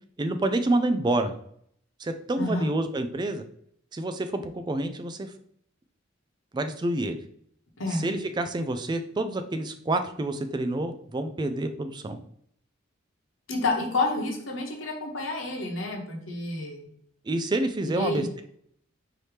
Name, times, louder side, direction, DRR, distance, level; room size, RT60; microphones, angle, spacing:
voice 1, 0.2-1.3 2.0-3.4 3.9-5.3 6.5-7.2 7.9-12.2 17.3-18.4, right 2 dB, 20° right, 8 dB, 0.3 m, -28 dB
voice 2, 2.4-2.7 7.8-8.0 13.5-16.9 17.9-18.3, left 2 dB, 70° left, 0 dB, 1.0 m, -29 dB
4.7 x 2.9 x 3.2 m, 0.66 s
head